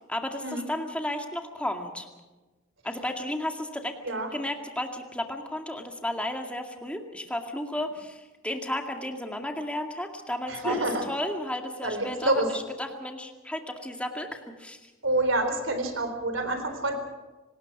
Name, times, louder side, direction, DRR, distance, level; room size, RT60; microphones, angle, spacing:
voice 1, 0.0-2.1 2.8-4.0 4.3-14.9, left 1 dB, 5° left, 4 dB, 2.2 m, -33 dB
voice 2, 10.5-11.0 11.8-12.5 15.0-16.9, right 2 dB, 70° right, 7 dB, 4.1 m, -27 dB
25.0 x 19.5 x 6.1 m, 1.2 s
head